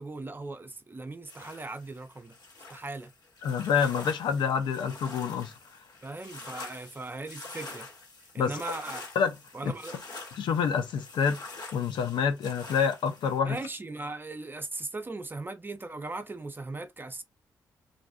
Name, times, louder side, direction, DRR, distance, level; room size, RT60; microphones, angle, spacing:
voice 1, 0.0-2.3 2.7-3.1 6.0-7.9 8.3-9.1 9.5-10.0 13.4-17.2, right 2 dB, 25° right, 0.5 m, -38 dB
sound 1, 1.3-13.4, left 3 dB, 55° left, 1.5 m, -46 dB
voice 2, 3.4-5.5 8.4-8.6 9.2-9.4 9.6-9.7 10.4-11.4 11.7-13.6, left 6 dB, 75° left, 0.5 m, -27 dB
2.4 x 2.3 x 2.4 m
supercardioid pair, 50°, 8 cm